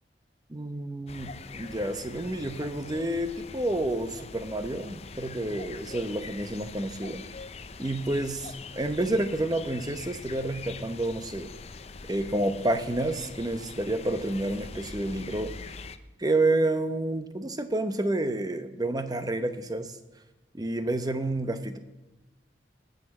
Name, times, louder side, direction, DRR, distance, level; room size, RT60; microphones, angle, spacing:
voice 1, 0.5-7.2 7.8-11.5 12.1-15.5 16.2-20.0 20.5-21.8, right 1 dB, 20° right, 9 dB, 0.8 m, -29 dB
sound 1, 1.1-16.0, left 4 dB, 35° left, 0.6 m, -43 dB
19.0 x 6.6 x 7.2 m, 1.1 s
head